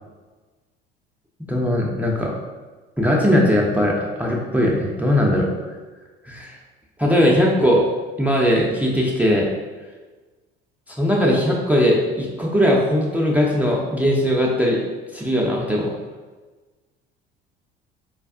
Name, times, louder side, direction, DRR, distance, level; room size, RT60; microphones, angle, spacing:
voice 1, 1.5-2.3 3.0-5.5 6.3-6.5 7.0-7.9 8.2-9.5 11.0-14.8 15.1-15.9, equal, 5° right, -2 dB, 0.4 m, -19 dB
4.3 x 2.3 x 2.4 m, 1.3 s
figure-of-eight pair, 65°, 31 cm